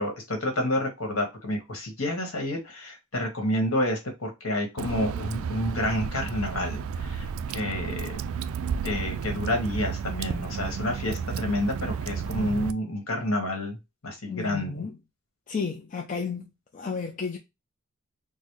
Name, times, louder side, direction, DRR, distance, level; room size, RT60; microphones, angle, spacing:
voice 1, 0.0-8.2 8.8-13.8 14.0-14.9, left 1 dB, 65° left, 1.4 m, -29 dB
Water / Drip, 4.8-12.7, right 6 dB, 65° right, 0.3 m, -32 dB
voice 2, 14.3-15.0 15.5-16.4 16.7-17.4, left 5 dB, 35° left, 0.4 m, -32 dB
4.0 x 2.1 x 3.0 m
head